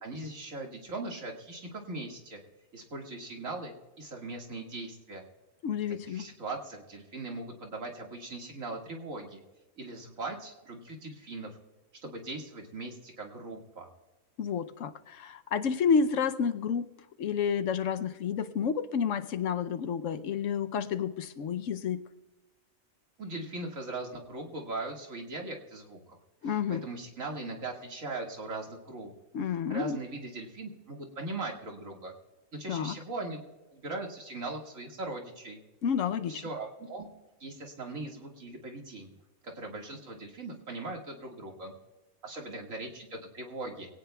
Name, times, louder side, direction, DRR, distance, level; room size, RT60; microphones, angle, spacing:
voice 1, 0.0-2.4 2.7-5.2 6.1-9.4 9.8-11.5 12.0-13.9 23.2-26.0 26.4-29.1 29.7-32.1 32.5-33.4 33.7-35.6 36.3-37.1 37.4-39.1 39.5-41.7 42.2-43.9, right 2 dB, 75° right, 1 dB, 2.4 m, -39 dB
voice 2, 5.6-6.3 14.4-16.9 17.2-22.0 26.4-26.9 29.3-30.0 32.7-32.9 35.8-36.4, left 6 dB, 70° left, 11 dB, 1.0 m, -30 dB
23.0 x 17.0 x 2.3 m, 1.1 s
omnidirectional pair, 1.4 m